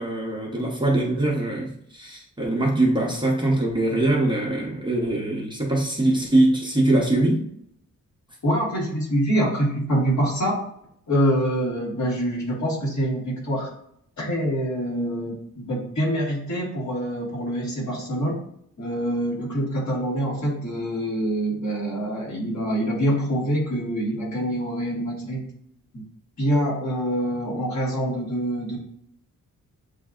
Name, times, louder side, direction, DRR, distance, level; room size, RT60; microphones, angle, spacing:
voice 1, 0.0-7.4, right 1 dB, 15° right, -3 dB, 0.7 m, -22 dB
voice 2, 8.4-10.6 11.1-13.7 14.2-18.4 18.8-25.5 25.9-26.0 26.4-28.8, equal, 55° left, -4 dB, 1.8 m, -25 dB
7.5 x 2.6 x 2.4 m, 0.69 s
wide cardioid pair, 160°, 33 cm